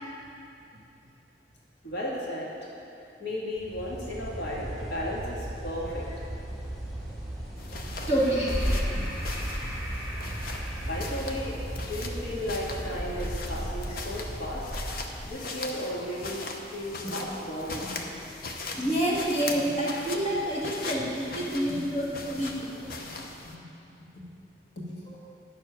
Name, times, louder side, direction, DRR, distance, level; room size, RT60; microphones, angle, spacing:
voice 1, 1.8-2.8 3.2-6.1 7.9-8.1 9.0-9.1 9.9-10.3 10.8-14.7 15.2-18.2 18.7-18.8 19.5-19.6 21.3-21.4 22.1-22.6 22.9-23.2 23.4-23.6 24.1-24.2 24.7-25.2, left 1 dB, 75° left, -4 dB, 1.8 m, -35 dB
sound 1, 3.6-15.5, right 1 dB, ahead, 1.9 m, -37 dB
sound 2, 7.6-23.6, left 3 dB, 55° left, 0.8 m, -40 dB
voice 2, 8.1-8.7 18.8-22.7 25.1-25.2, right 1 dB, 35° left, -6 dB, 1.8 m, -28 dB
sound 3, 8.5-10.4 10.7-10.9 11.4-11.5 11.8-11.9 12.3-15.3, equal, 15° left, 0.5 m, -34 dB
10.0 x 7.0 x 5.8 m, 2.7 s
head